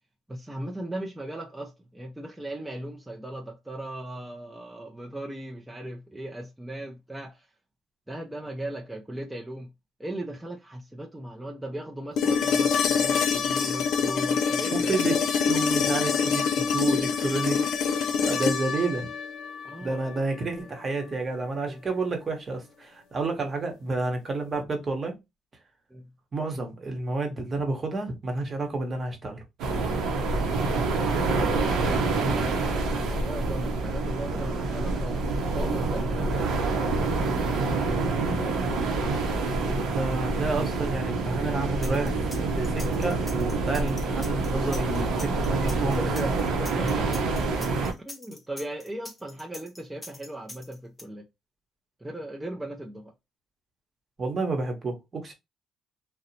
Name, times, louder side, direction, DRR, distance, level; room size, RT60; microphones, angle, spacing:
voice 1, 0.3-7.5 8.1-9.7 10.0-14.9 19.6-20.2 21.7-21.8 25.9-26.0 30.8-35.2 35.5-36.7 45.6-47.2 48.0-51.2 52.0-53.1, right 1 dB, 10° right, 0.5 m, -38 dB
sound 1, 12.2-20.2 22.3-22.4, left 6 dB, 75° left, 0.4 m, -25 dB
voice 2, 14.7-17.8 18.2-19.1 19.8-25.2 26.3-29.4 38.1-38.4 39.7-42.3 42.5-46.0 54.2-55.3, right 3 dB, 40° right, 0.9 m, -30 dB
sound 2, 29.6-47.9, right 3 dB, 75° right, 0.7 m, -27 dB
sound 3, 41.8-51.0, left 1 dB, 15° left, 0.9 m, -43 dB
2.7 x 2.1 x 2.7 m
supercardioid pair, 75°, 0 cm